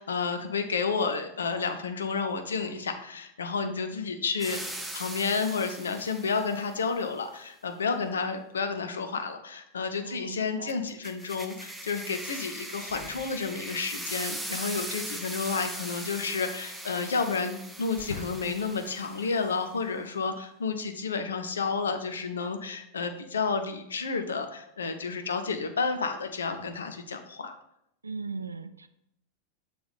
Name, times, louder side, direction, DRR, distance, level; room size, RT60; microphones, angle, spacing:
voice 1, 0.0-27.5, left 5 dB, 70° left, 7 dB, 0.6 m, -31 dB
voice 2, 3.6-4.0 10.0-10.8 28.0-28.9, right 4 dB, 80° right, 11 dB, 0.4 m, -38 dB
sound 1, 4.4-6.7 10.7-19.6, right 1 dB, 5° right, 0.6 m, -40 dB
sound 2, 12.8-14.0 15.5-16.7 17.0-17.2 17.7-18.7 19.4-19.5, left 5 dB, 50° left, 1.1 m, -49 dB
6.7 x 3.4 x 4.2 m, 0.76 s
figure-of-eight pair, 90°, 0 cm